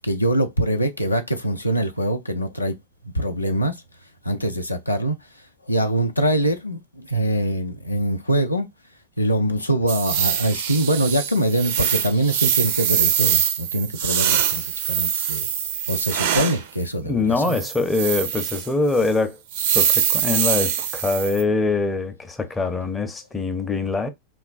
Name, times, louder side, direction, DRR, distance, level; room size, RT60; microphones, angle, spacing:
voice 1, 0.0-2.8 3.0-3.8 4.2-5.2 5.7-8.7 9.2-15.5 15.9-17.6, right 1 dB, 85° left, 0.4 m, -23 dB
sound 1, 9.9-16.6 17.4-18.7 19.0-19.1 19.5-21.4, right 9 dB, 50° right, 0.4 m, -23 dB
voice 2, 17.0-19.4 19.7-24.1, left 3 dB, 10° left, 0.5 m, -23 dB
3.0 x 2.2 x 2.3 m
figure-of-eight pair, 90°, 0 cm